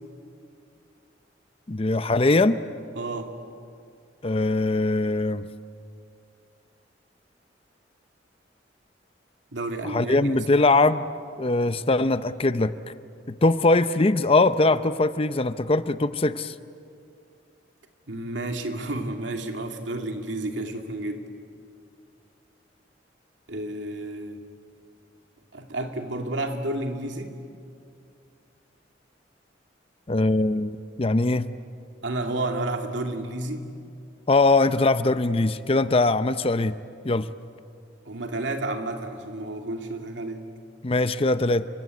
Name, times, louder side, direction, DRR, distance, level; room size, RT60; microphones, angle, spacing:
voice 1, 1.7-2.7 4.2-5.5 9.8-11.1 11.4-12.7 13.3-16.5 30.1-31.5 34.3-36.7 37.0-37.3 40.8-41.7, left 2 dB, 30° left, 13 dB, 0.6 m, -21 dB
voice 2, 2.9-3.3 9.5-10.3 18.1-21.2 23.5-24.4 25.5-27.3 32.0-33.7 38.1-40.5, right 2 dB, 80° right, 4 dB, 2.6 m, -31 dB
30.0 x 23.5 x 8.5 m, 2.4 s
head